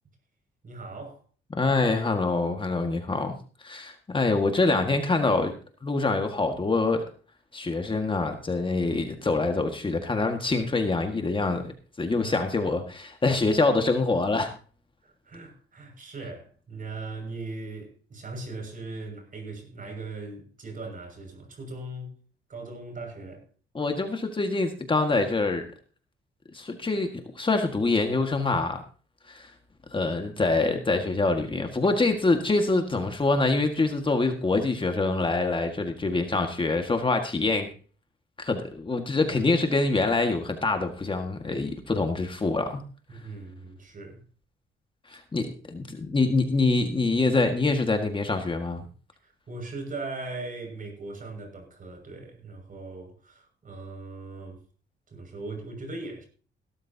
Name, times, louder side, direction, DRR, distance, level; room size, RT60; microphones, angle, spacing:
voice 1, 0.6-1.2 12.0-12.5 15.0-22.1 22.5-23.4 30.3-30.4 43.1-44.2 45.1-45.2 49.2-54.6 55.1-56.3, right 3 dB, 45° right, 6.3 m, -39 dB
voice 2, 1.5-3.3 3.6-5.5 5.8-7.1 7.5-11.7 12.0-14.5 23.7-25.7 26.5-28.8 29.3-29.5 29.9-37.7 38.4-42.8 45.1-48.8, left 3 dB, 25° left, 1.8 m, -25 dB
17.0 x 13.0 x 2.9 m
cardioid pair, 90°, 20 cm